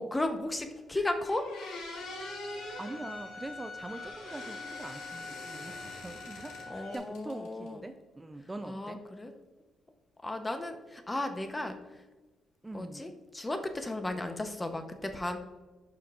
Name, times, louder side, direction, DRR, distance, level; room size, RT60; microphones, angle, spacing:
voice 1, 0.0-1.5 6.7-7.8 8.6-9.3 10.2-11.8 12.7-15.4, left 2 dB, 15° left, 7 dB, 0.9 m, -35 dB
sound 1, 0.8-0.9 1.2-3.0 3.9-6.7 6.9-7.7, left 2 dB, 85° left, 1.9 m, -44 dB
Bowed string instrument, 1.9-7.0, left 3 dB, 70° left, 1.9 m, -44 dB
voice 2, 2.8-9.0 12.6-13.1, right 2 dB, 20° right, 8 dB, 0.4 m, -43 dB
11.5 x 5.2 x 2.5 m, 1.2 s
cardioid pair, 90°, 0 cm